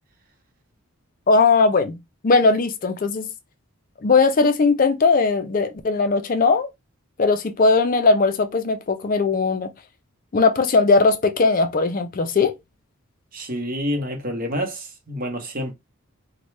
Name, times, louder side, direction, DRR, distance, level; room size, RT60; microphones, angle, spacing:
voice 1, 1.3-2.0 2.2-3.3 4.0-6.7 7.2-9.7 10.3-12.5, left 4 dB, 40° left, 0.4 m, -19 dB
voice 2, 13.3-15.7, equal, 40° right, 0.8 m, -28 dB
4.0 x 2.2 x 3.1 m
head